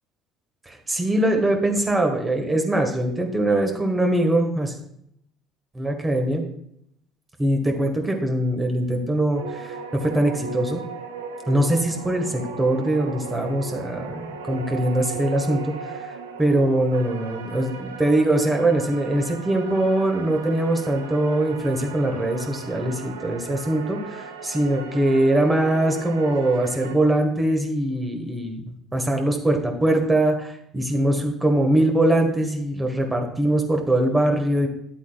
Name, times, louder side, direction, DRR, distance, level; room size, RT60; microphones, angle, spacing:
voice 1, 0.7-4.7 5.7-6.4 7.4-10.8 11.5-15.6 15.9-16.0 16.4-34.7, right 1 dB, 20° right, 3 dB, 1.6 m, -22 dB
sound 1, 9.3-27.0, right 4 dB, 85° right, 0.7 m, -37 dB
10.5 x 8.1 x 2.4 m, 0.74 s
hypercardioid pair, 60°, 0 cm